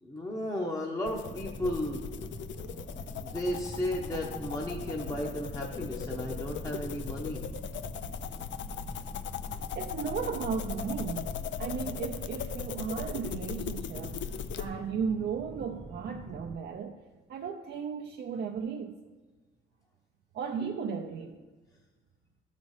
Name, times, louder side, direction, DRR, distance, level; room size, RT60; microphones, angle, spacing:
voice 1, 0.0-2.1 3.1-7.5, left 1 dB, 15° left, 0.9 m, -34 dB
sound 1, 1.1-14.7, left 7 dB, 65° left, 0.5 m, -38 dB
sound 2, 1.2-16.6, right 2 dB, 10° right, 0.5 m, -45 dB
voice 2, 9.8-11.3 11.6-17.0 17.3-19.0 20.3-21.4, right 6 dB, 55° right, 0.6 m, -35 dB
12.5 x 4.2 x 4.8 m
cardioid pair, 90°, 20 cm